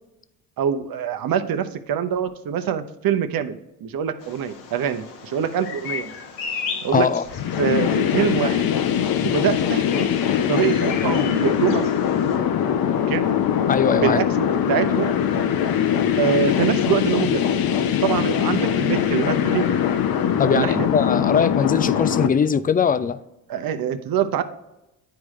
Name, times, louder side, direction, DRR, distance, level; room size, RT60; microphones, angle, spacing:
voice 1, 0.6-6.1 6.8-7.1 7.6-8.7 9.2-10.1 10.5-11.9 13.1-13.3 13.9-15.1 16.2-17.5 18.0-19.7 20.5-20.9 23.5-24.4, right 8 dB, 50° right, 0.8 m, -24 dB
Bird vocalization bird call bird song, 4.2-12.4, left 6 dB, 75° left, 1.2 m, -36 dB
voice 2, 6.9-7.2 13.7-14.2 20.4-23.2, left 6 dB, 20° left, 0.4 m, -20 dB
sound 1, 7.3-22.3, left 9 dB, 50° left, 0.8 m, -22 dB
10.5 x 4.7 x 3.1 m
hypercardioid pair, 50°, 47 cm